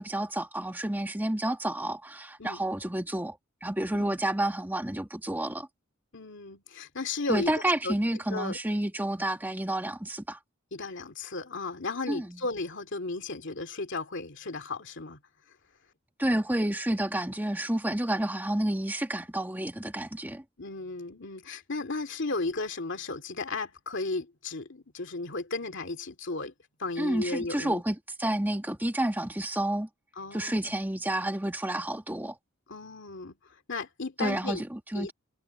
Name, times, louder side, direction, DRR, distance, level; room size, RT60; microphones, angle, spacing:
voice 1, 0.0-3.4 3.6-5.7 7.3-10.4 12.1-12.4 16.2-20.4 27.0-29.9 30.3-32.4 34.2-35.1, right 1 dB, 10° right, 1.6 m, -30 dB
voice 2, 6.1-7.5 7.8-7.9 8.3-8.6 10.7-15.2 20.6-26.5 26.8-27.8 30.2-30.6 32.7-33.3 33.7-34.6 34.9-35.1, left 3 dB, 60° left, 2.5 m, -34 dB
head